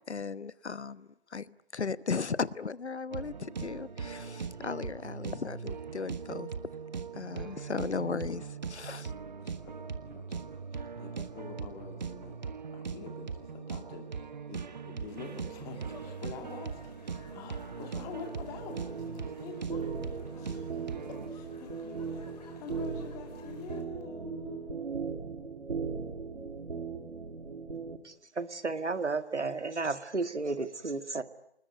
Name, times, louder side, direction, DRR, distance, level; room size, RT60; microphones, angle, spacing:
voice 1, 0.1-6.5 7.1-9.1, left 5 dB, 75° left, 1.1 m, -36 dB
sound 1, 3.1-21.3, right 5 dB, 40° right, 1.4 m, -40 dB
voice 2, 9.4-9.7 10.0-22.3 22.6-24.8, left 5 dB, 10° left, 2.0 m, -46 dB
sound 2, 15.1-23.8, left 5 dB, 35° left, 4.0 m, -56 dB
sound 3, 18.6-28.0, right 5 dB, 65° right, 2.7 m, -38 dB
voice 3, 28.0-31.2, right 3 dB, 85° right, 2.0 m, -33 dB
29.0 x 20.5 x 9.5 m
figure-of-eight pair, 155°, 34 cm